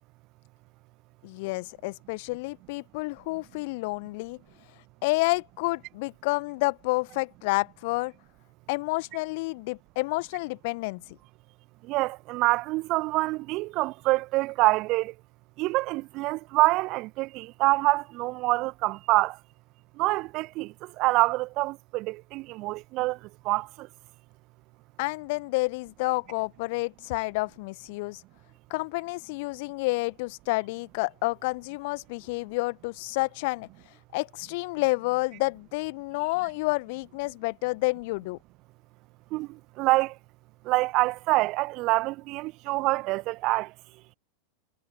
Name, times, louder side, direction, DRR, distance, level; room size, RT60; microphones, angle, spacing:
voice 1, 1.2-4.4 5.0-8.1 8.7-11.0 25.0-28.2 28.7-33.7 34.1-38.4, left 25 dB, 50° left, 1.5 m, -29 dB
voice 2, 11.9-15.1 15.6-19.4 20.0-23.2 23.4-23.9 39.3-40.1 40.6-43.7, right 21 dB, 45° right, 1.4 m, -26 dB
figure-of-eight pair, 85°, 0 cm